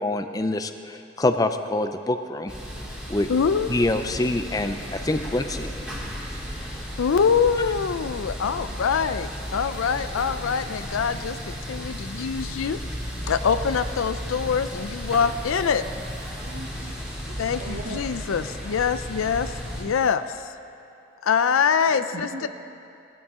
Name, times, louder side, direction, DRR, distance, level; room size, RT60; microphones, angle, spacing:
voice 1, 0.0-2.5 3.1-3.3 3.7-5.7, left 2 dB, 20° left, 8 dB, 0.4 m, -25 dB
sound 1, 2.5-19.8, equal, 5° right, 2.4 m, -34 dB
voice 2, 3.3-3.7 7.0-12.8 13.3-15.8 17.4-20.2 21.2-22.5, left 6 dB, 80° left, 11 dB, 0.4 m, -24 dB
voice 3, 16.4-18.0 21.9-22.5, right 1 dB, 60° right, -1 dB, 0.9 m, -40 dB
18.0 x 14.0 x 3.7 m, 2.6 s
head